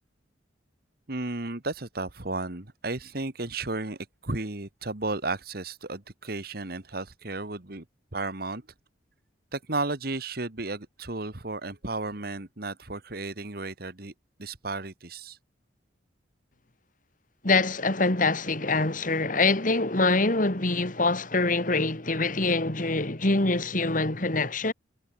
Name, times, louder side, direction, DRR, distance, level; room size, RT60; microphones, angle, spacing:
voice 1, 1.1-7.9 8.1-8.6 9.5-14.1 14.4-15.4, right 2 dB, 55° right, 1.8 m, -33 dB
voice 2, 17.4-24.7, left 3 dB, 45° left, 2.2 m, -24 dB
head